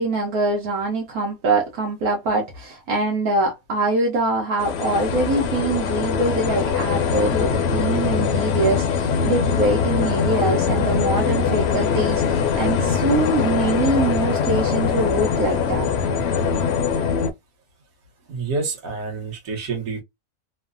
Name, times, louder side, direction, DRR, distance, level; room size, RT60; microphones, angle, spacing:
voice 1, 0.0-15.9, right 2 dB, 80° right, 1.2 m, -23 dB
sound 1, 4.6-17.3, left 6 dB, 65° left, 0.6 m, -22 dB
voice 2, 18.3-20.0, right 4 dB, 65° right, 1.4 m, -28 dB
3.1 x 2.1 x 2.5 m
omnidirectional pair, 1.6 m